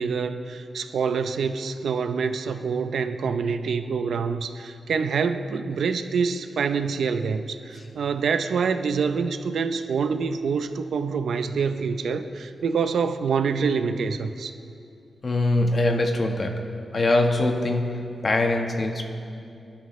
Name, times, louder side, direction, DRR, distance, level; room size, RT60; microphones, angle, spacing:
voice 1, 0.0-14.5, right 5 dB, 90° right, 9 dB, 0.7 m, -26 dB
voice 2, 15.2-16.6 16.9-19.0, left 2 dB, 40° left, 3 dB, 1.4 m, -23 dB
27.5 x 11.5 x 3.3 m, 2.6 s
wide cardioid pair, 125°, 0 cm